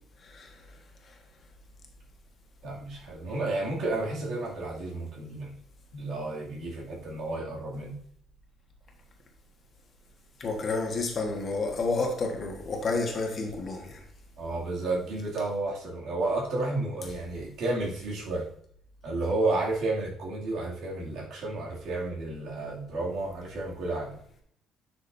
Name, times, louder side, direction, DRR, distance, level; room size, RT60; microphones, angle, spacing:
voice 1, 2.6-5.6 5.9-8.0 14.4-18.5 19.0-24.1, right 2 dB, 60° right, 2.5 m, -31 dB
voice 2, 10.4-14.0, left 3 dB, 30° left, 1.4 m, -30 dB
10.0 x 6.2 x 2.7 m
cardioid pair, 175°, 0 cm